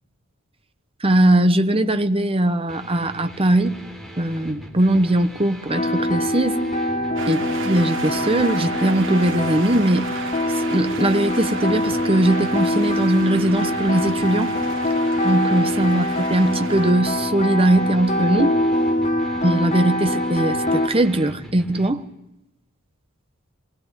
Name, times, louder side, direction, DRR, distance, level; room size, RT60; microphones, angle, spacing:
voice 1, 1.0-3.8 4.2-6.6 7.3-10.1 10.7-14.5 15.2-18.5 19.4-22.0, right 1 dB, 25° right, 1.3 m, -20 dB
sound 1, 2.7-21.9, equal, ahead, 3.8 m, -41 dB
sound 2, 5.7-20.9, left 1 dB, 35° left, 2.8 m, -24 dB
sound 3, 7.2-16.9, right 4 dB, 65° right, 2.7 m, -35 dB
25.0 x 20.0 x 10.0 m
head